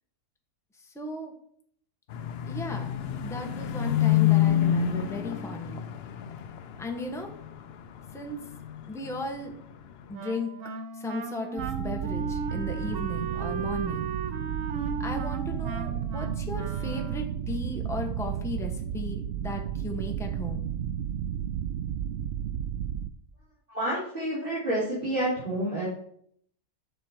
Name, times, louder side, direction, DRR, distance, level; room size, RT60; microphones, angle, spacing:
voice 1, 0.8-1.3 2.5-2.9 3.2-5.9 6.8-7.3 8.1-8.5 8.9-9.5 10.1-10.5 10.9-14.1 15.0-20.6, left 2 dB, ahead, 2 dB, 1.1 m, -36 dB
sound 1, 2.1-9.2 9.5-10.0, left 11 dB, 65° left, 0.6 m, -27 dB
Wind instrument woodwind instrument, 10.1-17.4, right 5 dB, 60° right, 1.1 m, -36 dB
sound 2, 11.6-23.1, right 9 dB, 80° right, 0.5 m, -32 dB
voice 2, 23.7-25.8, right 1 dB, 35° right, -9 dB, 3.4 m, -29 dB
9.8 x 6.5 x 4.5 m, 0.66 s
omnidirectional pair, 1.6 m